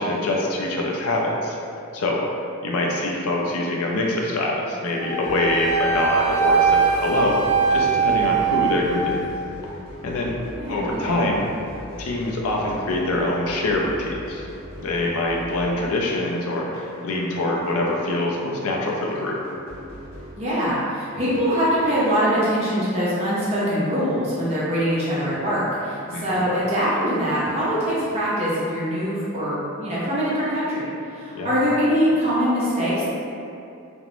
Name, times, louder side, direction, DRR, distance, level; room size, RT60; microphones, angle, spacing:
voice 1, 0.0-1.6 1.9-2.2 2.6-7.4 7.7-9.2 10.0-10.3 10.7-11.5 12.0-14.5 14.8-19.4 26.1-26.5 31.3-31.5, left 2 dB, 70° left, -1 dB, 0.4 m, -24 dB
Wind instrument woodwind instrument, 5.0-9.3, right 5 dB, 70° right, 0.4 m, -21 dB
sound 1, 5.2-20.3, equal, 25° left, 0.8 m, -40 dB
voice 2, 10.5-11.2 20.4-30.8 31.1-33.1, equal, 30° right, -9 dB, 0.6 m, -23 dB
2.5 x 2.0 x 2.9 m, 2.6 s
head